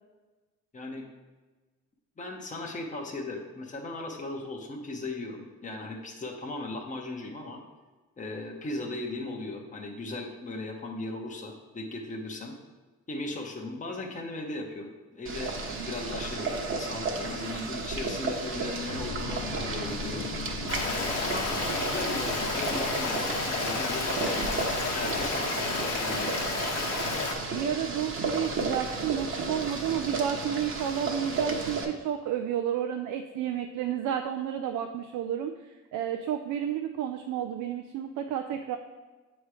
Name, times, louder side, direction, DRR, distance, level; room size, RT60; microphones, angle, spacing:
voice 1, 0.7-1.0 2.2-7.6 8.2-12.6 13.1-20.3 20.8-26.3, left 2 dB, 25° left, 1 dB, 0.9 m, -37 dB
Boiling, 15.3-31.9, right 3 dB, 45° right, 1.0 m, -33 dB
sound 1, 18.9-26.1, left 5 dB, 85° left, 0.6 m, -41 dB
Stream, 20.7-27.3, left 3 dB, 55° left, 1.1 m, -31 dB
voice 2, 27.5-38.8, right 10 dB, 85° right, 6 dB, 0.4 m, -31 dB
7.3 x 3.1 x 4.8 m, 1.3 s
cardioid pair, 90°, 30 cm